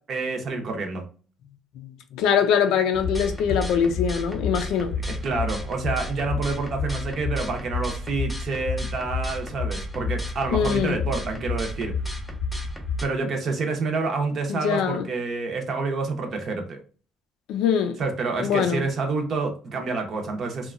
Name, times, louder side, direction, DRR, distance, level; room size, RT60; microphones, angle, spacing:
voice 1, 0.1-1.0 5.1-11.9 13.0-16.8 18.0-20.7, right 3 dB, 45° right, 0.7 m, -28 dB
voice 2, 1.8-5.0 10.5-11.0 14.5-15.1 17.5-18.0 18.4-18.9, left 7 dB, 85° left, 0.4 m, -23 dB
sound 1, 2.9-13.0, left 3 dB, 5° left, 0.5 m, -30 dB
2.8 x 2.2 x 2.4 m
cardioid pair, 140°, 0 cm